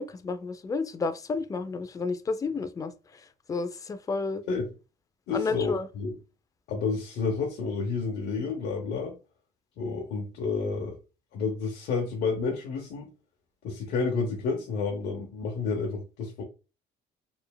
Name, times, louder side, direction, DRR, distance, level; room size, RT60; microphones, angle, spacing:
voice 1, 0.0-3.2 3.5-4.4 5.3-5.9, left 4 dB, 20° left, 0.4 m, -31 dB
voice 2, 5.3-6.1 6.7-9.1 9.8-11.0 11.3-13.1 13.6-16.4, left 4 dB, 75° left, 0.8 m, -30 dB
4.3 x 3.3 x 2.2 m
cardioid pair, 110°, 17 cm